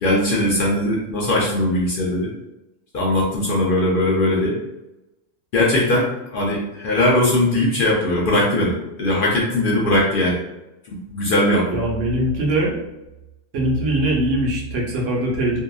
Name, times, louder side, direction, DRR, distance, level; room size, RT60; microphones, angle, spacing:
voice 1, 0.0-2.3 2.9-4.6 5.5-10.4 10.9-11.8, left 1 dB, 65° left, -4 dB, 0.5 m, -20 dB
voice 2, 11.7-12.8 13.5-15.6, right 1 dB, 70° right, -3 dB, 1.0 m, -21 dB
2.7 x 2.3 x 2.3 m, 0.94 s
omnidirectional pair, 1.4 m